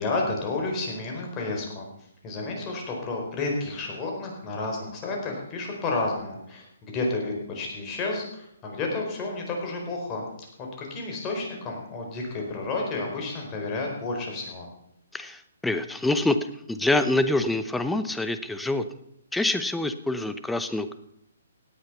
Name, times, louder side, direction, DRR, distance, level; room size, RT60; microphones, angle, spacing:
voice 1, 0.0-1.9 2.2-10.3 10.6-14.7, left 3 dB, 25° left, 0 dB, 4.5 m, -31 dB
voice 2, 15.1-16.4 16.7-18.8 19.3-21.0, left 2 dB, 5° left, 10 dB, 0.8 m, -26 dB
17.5 x 8.9 x 5.6 m, 0.75 s
hypercardioid pair, 140°, 0 cm